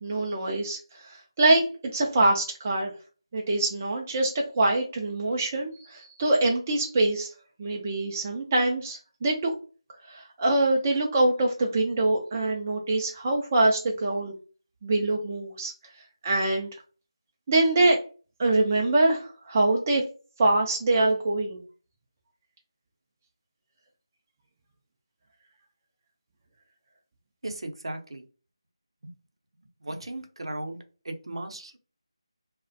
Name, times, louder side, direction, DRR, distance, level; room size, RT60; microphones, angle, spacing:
voice 1, 0.0-1.6 1.9-2.9 3.3-7.3 7.6-9.5 10.1-14.3 14.8-15.7 16.2-16.7 17.5-18.0 18.4-20.0 20.4-21.6, right 2 dB, 20° right, -1 dB, 0.3 m, -24 dB
voice 2, 27.4-28.2 29.0-29.1 29.8-30.8 31.0-31.8, right 1 dB, 65° right, 5 dB, 0.6 m, -36 dB
2.3 x 2.0 x 2.5 m, 0.36 s
figure-of-eight pair, 165°, 3 cm